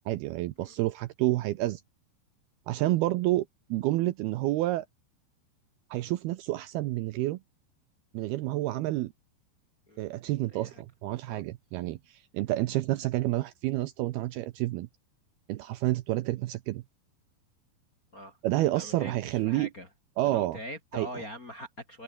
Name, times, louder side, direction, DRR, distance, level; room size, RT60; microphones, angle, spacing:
voice 1, 0.1-1.8 2.7-4.9 5.9-7.4 8.1-9.1 10.0-14.9 15.5-16.8 18.4-19.7 20.2-20.6 20.9-21.1, right 16 dB, 80° right, 2.4 m, -29 dB
voice 2, 10.5-10.8 11.3-11.4 18.1-19.9 20.3-22.0, equal, 30° left, 1.8 m, -43 dB
open air
omnidirectional pair, 5.1 m